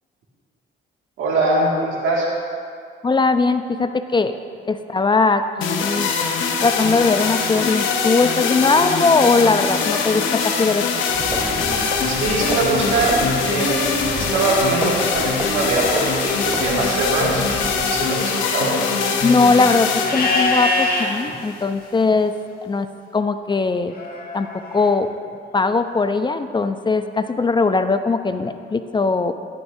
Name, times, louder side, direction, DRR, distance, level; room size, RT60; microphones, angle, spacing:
voice 1, 1.2-2.3 12.1-17.5 17.7-18.7, right 3 dB, 90° right, -4 dB, 2.1 m, -22 dB
voice 2, 3.0-4.4 4.7-6.1 6.6-11.0 19.2-22.3 22.6-22.9 23.1-23.9 24.3-25.1 25.5-29.3, left 4 dB, 25° left, 9 dB, 0.4 m, -19 dB
sound 1, 5.6-21.6, left 5 dB, 90° left, 1.0 m, -23 dB
sound 2, 11.1-18.1, right 3 dB, 20° right, 0.7 m, -32 dB
Livestock farm animals working animals, 20.0-21.1 23.9-24.9, left 3 dB, 45° left, 1.7 m, -22 dB
11.5 x 11.0 x 2.7 m, 2.3 s
cardioid pair, 90°, 20 cm